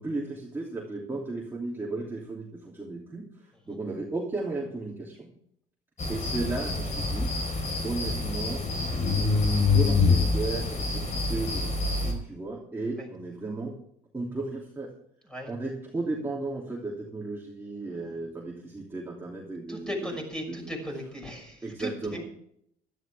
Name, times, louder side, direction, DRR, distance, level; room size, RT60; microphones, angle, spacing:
voice 1, 0.0-5.3 6.1-7.3 7.8-8.6 9.5-13.7 14.1-14.9 15.5-20.2 20.5-20.7 21.6-22.3, right 3 dB, 15° right, -3 dB, 3.0 m, -35 dB
sound 1, 6.0-12.1, left 3 dB, 45° left, 4.7 m, -26 dB
voice 2, 19.7-21.9, equal, 5° left, 1 dB, 6.2 m, -36 dB
16.0 x 13.0 x 3.5 m, 0.70 s
cardioid pair, 110°, 17 cm